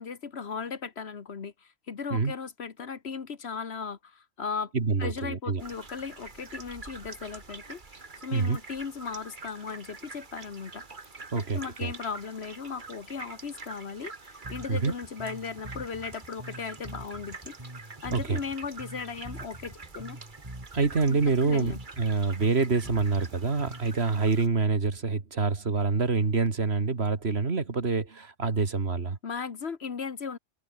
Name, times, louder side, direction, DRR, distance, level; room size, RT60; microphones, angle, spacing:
voice 1, 0.0-4.7 5.0-10.8 11.3-17.6 18.0-20.2 21.1-21.8 29.2-30.4, left 5 dB, 60° left, 1.6 m, -37 dB
voice 2, 4.7-5.6 8.3-8.6 11.3-11.9 14.7-14.9 18.1-18.4 20.7-29.2, right 4 dB, 60° right, 2.2 m, -26 dB
sound 1, 5.6-24.5, right 4 dB, 40° right, 1.9 m, -46 dB
Bass guitar, 14.4-24.0, right 1 dB, 25° right, 3.4 m, -45 dB
open air
omnidirectional pair, 1.2 m